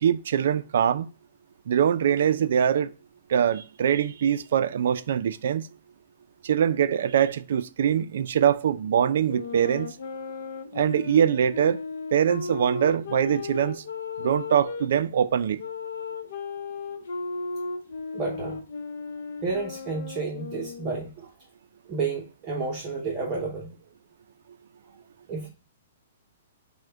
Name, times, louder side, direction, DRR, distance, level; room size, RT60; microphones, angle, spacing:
voice 1, 0.0-1.1 1.7-2.9 3.3-5.7 6.4-9.9 10.7-11.8 12.1-13.8 14.2-15.6, right 9 dB, 55° right, 0.3 m, -23 dB
sound 1, 9.2-14.9 15.6-21.1, left 4 dB, 70° left, 0.6 m, -35 dB
voice 2, 18.1-18.6 19.4-21.3 21.9-23.7 25.3-25.5, right 4 dB, 20° right, 0.7 m, -31 dB
6.3 x 2.1 x 3.4 m
hypercardioid pair, 170°, 0 cm